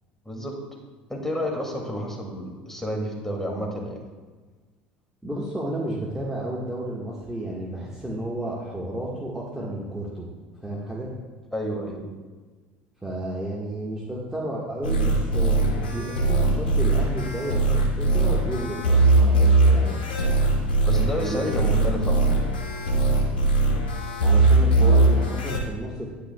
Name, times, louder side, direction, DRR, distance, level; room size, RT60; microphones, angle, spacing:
voice 1, 0.2-0.6 1.1-4.0 11.5-12.1 20.9-22.3, equal, 5° left, 0 dB, 2.4 m, -30 dB
voice 2, 5.2-10.3 10.6-11.1 13.0-20.0 21.1-21.6 24.2-26.1, right 1 dB, 10° right, -5 dB, 1.6 m, -32 dB
sound 1, 14.8-25.6, right 2 dB, 80° left, 1.4 m, -20 dB
10.0 x 10.0 x 2.3 m, 1.4 s
hypercardioid pair, 70°, 6 cm